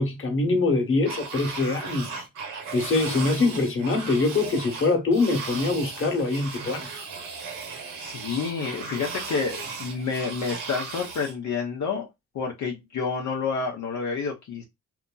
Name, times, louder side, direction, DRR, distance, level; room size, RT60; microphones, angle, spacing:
voice 1, 0.0-2.3 2.7-6.9, left 3 dB, 40° left, 1.2 m, -24 dB
sound 1, 1.0-11.4, right 4 dB, 90° right, 1.1 m, -36 dB
voice 2, 7.9-12.1 12.3-14.6, left 5 dB, 65° left, 0.8 m, -29 dB
2.8 x 2.6 x 2.2 m
cardioid pair, 75°, 31 cm